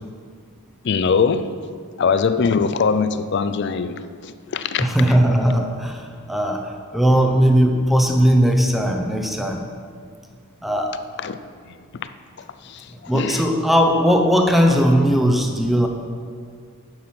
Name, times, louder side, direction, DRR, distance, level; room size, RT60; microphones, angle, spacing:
voice 1, 0.8-1.6 2.0-5.2 11.2-11.4 11.7-12.1 12.6-13.5, left 5 dB, 50° left, 12 dB, 0.4 m, -22 dB
voice 2, 4.8-9.6 10.6-10.9 13.1-15.9, equal, ahead, 2 dB, 0.7 m, -18 dB
9.6 x 6.1 x 5.9 m, 2.1 s
head